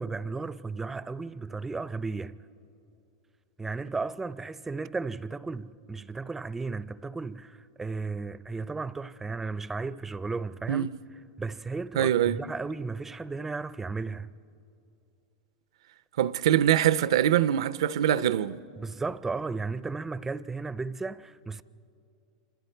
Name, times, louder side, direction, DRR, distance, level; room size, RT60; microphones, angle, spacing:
voice 1, 0.0-2.4 3.6-10.9 11.4-14.3 18.8-21.6, right 4 dB, 10° right, 0.4 m, -34 dB
voice 2, 12.0-12.4 16.2-18.6, right 11 dB, 80° right, 0.5 m, -23 dB
28.0 x 26.0 x 4.5 m
supercardioid pair, 140°, 3 cm